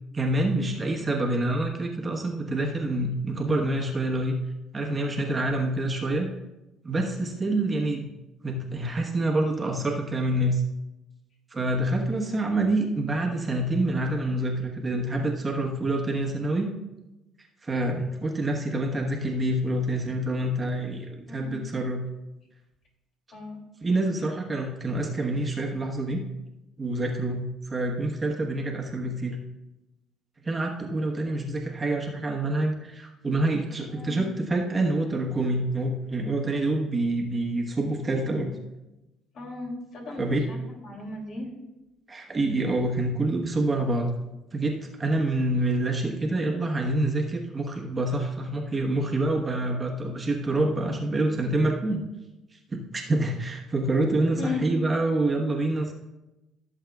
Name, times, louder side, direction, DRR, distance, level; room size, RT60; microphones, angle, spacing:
voice 1, 0.1-4.4 4.7-6.3 6.8-8.1 8.4-10.6 11.5-16.7 17.6-22.0 23.8-26.2 26.8-29.4 30.4-38.5 40.2-40.4 42.1-44.1 44.5-52.0 52.5-55.9, right 2 dB, 25° right, 1 dB, 1.1 m, -27 dB
voice 2, 21.3-21.6 23.3-23.6 33.9-34.3 39.3-40.6 40.8-41.5 54.4-54.7, left 3 dB, 60° left, 0 dB, 2.6 m, -35 dB
15.5 x 7.3 x 2.3 m, 0.99 s
cardioid pair, 115°, 0 cm